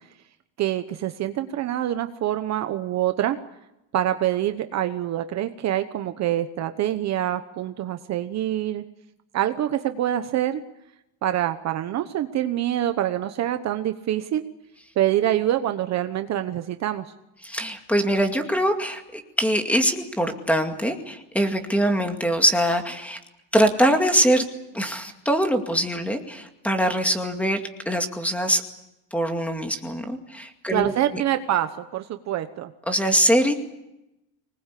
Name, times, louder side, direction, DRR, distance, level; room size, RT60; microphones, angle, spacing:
voice 1, 0.6-3.4 3.9-8.8 9.3-10.6 11.2-14.4 15.0-17.1 30.7-32.7, right 12 dB, 40° right, 9 dB, 1.1 m, -25 dB
voice 2, 17.4-23.2 23.5-24.4 24.7-28.6 29.1-31.2 32.9-33.5, equal, 5° left, 5 dB, 2.2 m, -23 dB
25.0 x 20.0 x 8.5 m, 0.90 s
cardioid pair, 160°, 42 cm